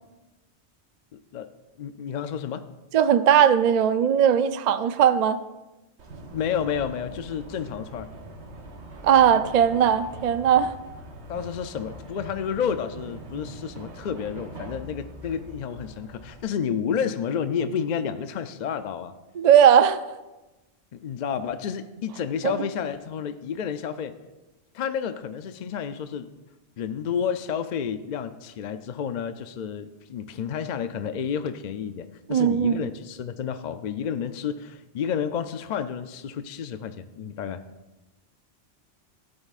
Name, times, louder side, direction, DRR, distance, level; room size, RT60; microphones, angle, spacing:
voice 1, 1.1-1.5 1.8-2.6 6.3-8.1 11.3-19.1 20.9-24.1 24.7-26.3 26.8-37.6, left 7 dB, 55° left, 0.5 m, -30 dB
voice 2, 2.9-5.4 9.0-10.7 19.4-20.0 22.4-22.5 32.3-32.8, right 8 dB, 55° right, 0.4 m, -19 dB
sound 1, 6.0-16.4, right 2 dB, 80° right, 1.3 m, -42 dB
16.0 x 8.7 x 2.4 m
omnidirectional pair, 1.1 m